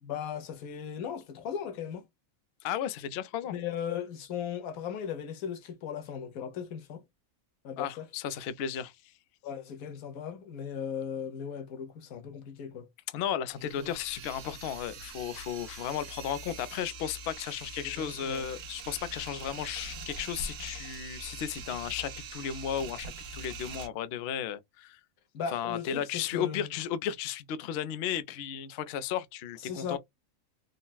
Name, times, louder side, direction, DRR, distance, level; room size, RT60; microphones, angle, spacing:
voice 1, 0.0-2.0 3.5-7.0 7.6-8.1 9.4-12.9 13.6-13.9 17.8-18.5 25.3-26.7 29.6-30.0, left 8 dB, 90° left, 1.2 m, -37 dB
voice 2, 2.6-3.6 7.8-8.9 13.1-25.0 25.5-30.0, left 9 dB, 65° left, 0.6 m, -34 dB
sound 1, 13.5-23.9, right 3 dB, 70° right, 1.0 m, -43 dB
3.9 x 2.1 x 2.2 m
omnidirectional pair, 1.4 m